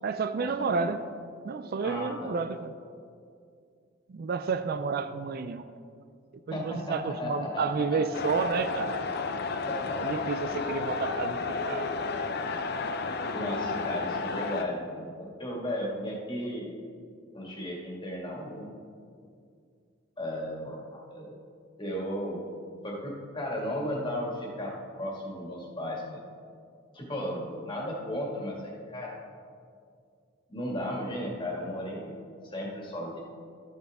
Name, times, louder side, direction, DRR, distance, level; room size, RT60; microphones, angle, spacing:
voice 1, 0.0-1.0 1.4-2.7 4.1-5.7 6.5-9.1 10.0-11.9, right 5 dB, 50° right, 11 dB, 0.4 m, -31 dB
voice 2, 1.8-2.3 6.5-8.0 9.7-10.0 13.3-16.7 17.3-18.7 20.2-21.3 21.8-22.4 22.8-26.2 26.9-29.2 30.5-32.1 32.4-33.2, equal, 25° left, -2 dB, 2.0 m, -35 dB
sound 1, 8.1-14.6, left 4 dB, 55° left, 0.6 m, -32 dB
13.0 x 8.8 x 3.5 m, 2.3 s
head